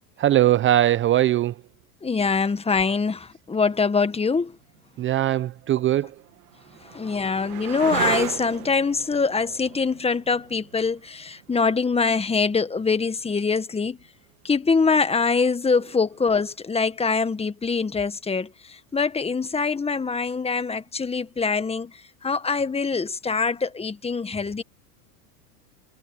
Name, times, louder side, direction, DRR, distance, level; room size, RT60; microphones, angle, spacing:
voice 1, 0.2-1.6 5.0-6.1, right 13 dB, 25° right, 0.7 m, -20 dB
voice 2, 2.0-4.6 6.8-14.0 14.4-24.6, left 4 dB, 15° left, 1.6 m, -24 dB
sound 1, 4.7-4.8 5.7-13.3 15.6-16.2, right 16 dB, 70° right, 2.5 m, -35 dB
hypercardioid pair, 105°, 45 cm